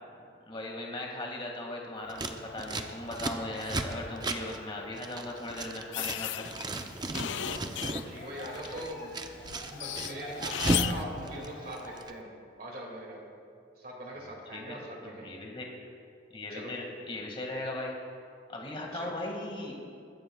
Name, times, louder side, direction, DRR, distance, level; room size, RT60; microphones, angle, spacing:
voice 1, 0.5-6.5 14.5-15.9 16.3-18.0 18.5-19.7, left 2 dB, 30° left, 0 dB, 2.0 m, -38 dB
Scissors, 2.1-6.2 6.4-8.1 8.4-10.9 11.2-12.1, right 2 dB, 20° right, 0.6 m, -35 dB
sound 1, 2.4-12.0, left 1 dB, 45° left, 2.5 m, -48 dB
sound 2, 5.9-8.8 9.2-11.0, left 12 dB, 70° left, 0.4 m, -35 dB
voice 2, 7.2-9.1 9.7-12.3 12.6-13.2 13.8-15.4 16.5-16.8 18.9-19.2, right 1 dB, 50° right, -2 dB, 2.3 m, -42 dB
22.0 x 14.5 x 2.3 m, 2.4 s
head